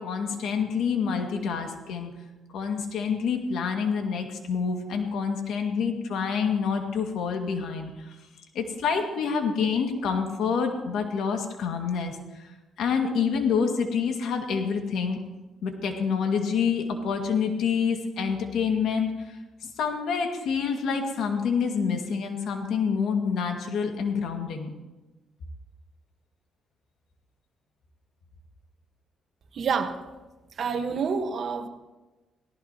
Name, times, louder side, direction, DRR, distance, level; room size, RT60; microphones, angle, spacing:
voice 1, 0.0-2.1 2.5-8.2 8.5-12.1 12.8-15.2 15.6-19.4 19.6-24.7, left 6 dB, 75° left, 3 dB, 2.2 m, -27 dB
voice 2, 29.5-30.0 30.6-31.7, right 5 dB, 55° right, 6 dB, 1.5 m, -27 dB
18.0 x 16.5 x 3.0 m, 1.1 s
cardioid pair, 90°, 0 cm